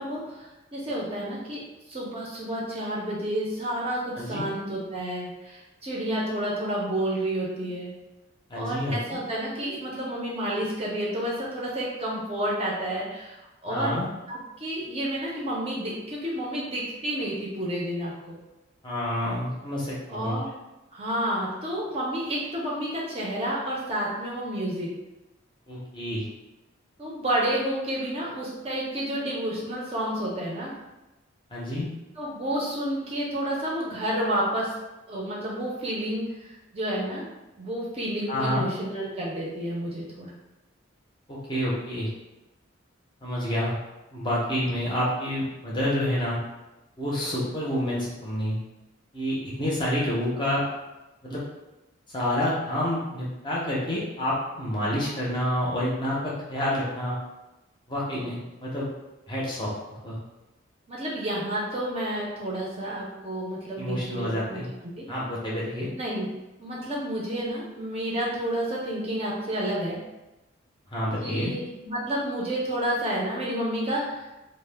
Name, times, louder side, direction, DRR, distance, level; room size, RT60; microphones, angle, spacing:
voice 1, 0.0-1.6 1.9-7.9 8.5-13.4 13.6-14.0 14.3-18.4 20.1-20.5 20.9-24.9 27.0-30.7 32.2-34.7 35.1-37.3 37.6-40.3 60.9-64.6 64.9-65.0 65.9-66.3 66.6-70.0 71.2-74.4, right 1 dB, 30° right, -5 dB, 0.5 m, -30 dB
voice 2, 4.1-4.5 8.5-9.2 13.7-14.1 18.8-20.4 25.7-26.3 31.5-31.9 38.3-38.7 41.3-42.1 43.2-43.8 44.1-46.4 47.0-48.6 49.1-50.6 51.2-51.4 52.1-57.2 57.9-58.9 59.3-60.2 63.8-64.7 65.1-65.9 70.9-71.5, left 1 dB, 25° left, -6 dB, 0.5 m, -28 dB
2.1 x 2.0 x 3.2 m, 1.0 s
head